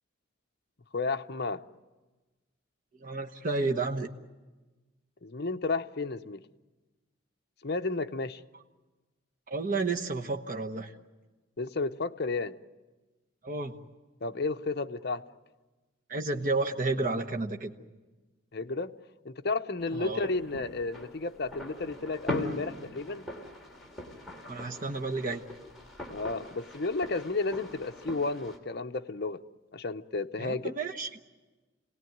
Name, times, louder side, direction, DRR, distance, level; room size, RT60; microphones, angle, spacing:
voice 1, 0.9-1.6 5.2-6.4 7.6-8.4 11.6-12.6 14.2-15.2 18.5-19.0 19.2-23.2 26.1-29.4 29.7-30.7, left 3 dB, 50° left, 8 dB, 0.7 m, -32 dB
voice 2, 3.0-4.1 9.5-11.0 13.4-13.8 16.1-17.7 19.9-20.2 24.5-25.4 30.4-31.1, right 3 dB, 40° right, 2 dB, 1.1 m, -31 dB
sound 1, 19.8-28.6, left 1 dB, ahead, 3.1 m, -41 dB
28.0 x 19.0 x 9.3 m, 1.2 s
head